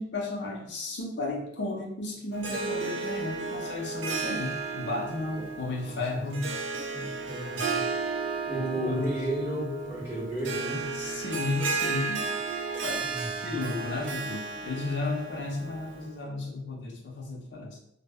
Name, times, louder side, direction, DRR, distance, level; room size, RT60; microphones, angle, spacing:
voice 1, 0.0-6.5 8.5-10.1 10.4-12.3 12.6-17.8, left 2 dB, 70° left, -1 dB, 0.5 m, -34 dB
Harp, 2.3-16.1, right 4 dB, 85° right, 0.4 m, -34 dB
voice 2, 5.8-6.5 6.9-7.8 8.5-10.8 13.0-13.5, right 1 dB, 15° right, -8 dB, 0.9 m, -34 dB
2.1 x 2.0 x 3.4 m, 0.80 s
head